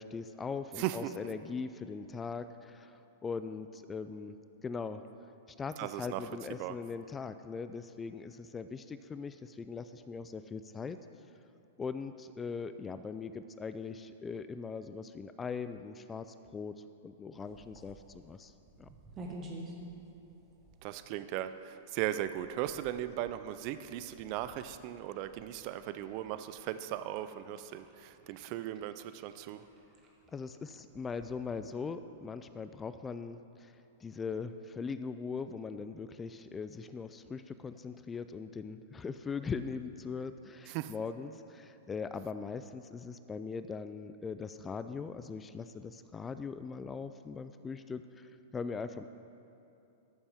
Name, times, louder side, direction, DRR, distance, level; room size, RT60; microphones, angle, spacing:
voice 1, 0.0-4.4 4.6-5.0 5.6-11.0 11.8-18.5 18.8-18.9 30.3-49.0, left 5 dB, 15° left, 11 dB, 0.3 m, -40 dB
voice 2, 0.8-1.1 5.8-6.3 6.6-6.8 20.8-29.6 40.7-40.9, right 12 dB, 45° right, 12 dB, 0.4 m, -37 dB
sound 1, 17.4-31.9, right 1 dB, 30° right, 1.5 m, -53 dB
14.0 x 7.2 x 3.6 m, 2.7 s
hypercardioid pair, 120°, 0 cm